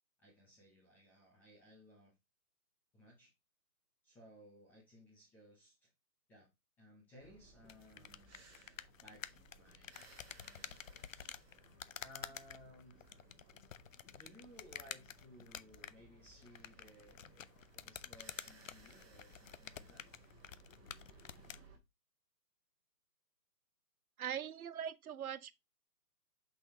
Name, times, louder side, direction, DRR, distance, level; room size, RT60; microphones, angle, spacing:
voice 1, 0.2-2.1 2.9-3.3 4.0-5.9 6.3-6.5 6.8-8.4 9.0-10.0 10.4-11.3 12.0-13.0 14.1-20.0, equal, 5° left, 0.8 m, -60 dB
sound 1, 7.2-21.8, right 3 dB, 15° right, 1.5 m, -63 dB
sound 2, 7.6-21.6, left 9 dB, 55° left, 0.6 m, -51 dB
voice 2, 24.2-25.5, right 9 dB, 60° right, 0.8 m, -41 dB
6.2 x 5.8 x 2.9 m
figure-of-eight pair, 145°, 48 cm